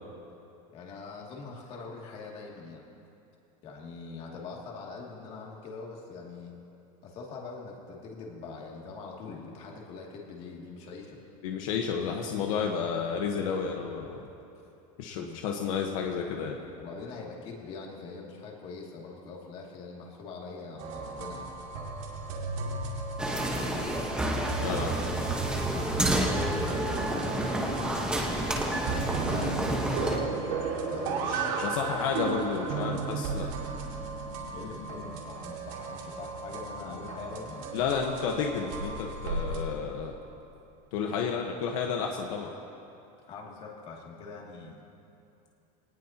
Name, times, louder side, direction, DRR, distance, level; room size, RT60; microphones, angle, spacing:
voice 1, 0.7-2.8 3.6-6.5 7.0-11.2 15.1-15.5 16.8-21.5 23.6-24.1 24.6-28.3 29.0-31.6 34.5-37.7 43.3-44.8, left 4 dB, 35° left, -2 dB, 2.6 m, -43 dB
voice 2, 11.4-14.2 15.0-16.7 24.6-24.9 31.3-33.5 37.7-40.1 40.9-42.5, left 6 dB, 70° left, 1 dB, 1.4 m, -31 dB
sound 1, 20.8-39.6, right 4 dB, 65° right, 2.4 m, -35 dB
sound 2, 23.2-30.2, right 1 dB, 5° right, 1.3 m, -30 dB
25.0 x 19.0 x 3.0 m, 2.7 s
supercardioid pair, 170°, 18 cm